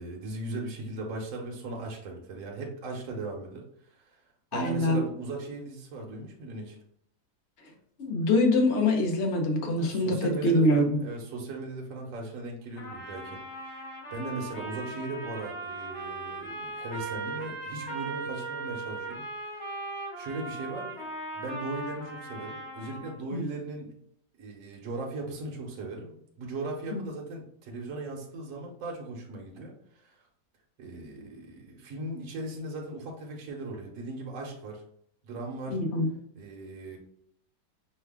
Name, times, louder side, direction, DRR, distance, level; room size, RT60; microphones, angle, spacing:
voice 1, 0.0-4.2 4.5-6.8 9.7-13.8 14.1-19.8 20.2-21.1 21.3-23.9 24.4-30.2 30.8-34.8 35.2-35.8 36.3-37.0, right 2 dB, 55° right, 0 dB, 1.2 m, -38 dB
voice 2, 4.5-5.0 8.0-11.0 23.3-23.4 26.9-27.0 35.7-36.1, left 1 dB, 50° left, 3 dB, 0.9 m, -24 dB
Trumpet, 12.8-23.2, right 2 dB, 85° left, 2.7 m, -38 dB
5.6 x 2.3 x 3.5 m, 0.68 s
omnidirectional pair, 1.9 m